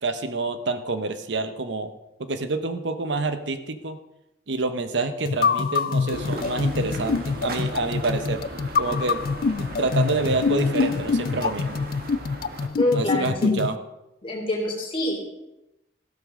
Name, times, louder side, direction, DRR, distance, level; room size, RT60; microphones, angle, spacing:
voice 1, 0.0-1.9 2.2-4.0 4.5-8.4 8.8-9.2 9.6-11.8 12.9-13.8, right 3 dB, 70° right, 9 dB, 0.9 m, -28 dB
sound 1, 5.3-13.8, left 5 dB, 50° left, 0.4 m, -25 dB
sound 2, 6.1-12.7, right 1 dB, 50° right, 1.6 m, -36 dB
voice 2, 12.8-13.6 14.2-15.2, left 1 dB, 30° left, 0 dB, 3.0 m, -25 dB
14.5 x 12.5 x 3.7 m, 0.93 s
head